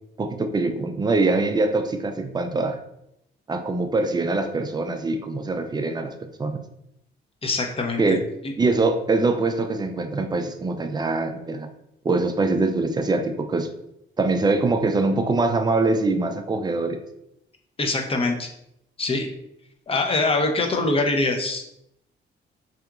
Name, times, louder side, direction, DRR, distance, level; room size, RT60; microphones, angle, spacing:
voice 1, 0.2-2.8 3.5-6.6 8.0-8.2 8.6-11.7 12.0-13.7 14.2-17.0, right 3 dB, 20° right, 6 dB, 0.4 m, -23 dB
voice 2, 7.4-8.0 8.4-8.5 17.8-18.5 19.0-19.3 19.9-21.7, left 2 dB, 30° left, 3 dB, 0.6 m, -23 dB
3.5 x 2.8 x 2.4 m, 0.78 s
cardioid pair, 90°, 20 cm